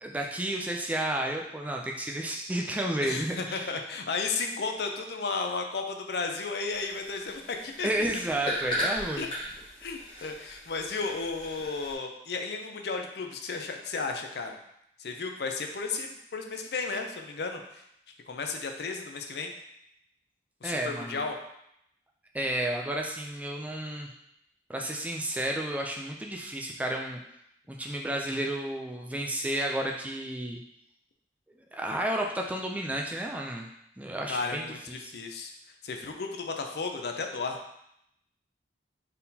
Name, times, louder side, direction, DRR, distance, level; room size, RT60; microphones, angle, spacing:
voice 1, 0.0-3.7 7.8-9.3 10.2-10.3 20.6-21.2 22.3-24.1 24.7-27.2 27.7-30.6 31.7-33.7 34.0-35.1, right 1 dB, 10° right, 1 dB, 0.3 m, -32 dB
voice 2, 3.0-7.9 9.2-9.3 9.8-14.6 15.0-17.8 18.3-19.5 20.6-21.4 34.3-35.5 35.8-37.6, left 4 dB, 65° left, 4 dB, 0.5 m, -34 dB
sound 1, 6.7-11.9, equal, 30° left, 1.5 m, -37 dB
4.2 x 3.7 x 2.7 m, 0.78 s
head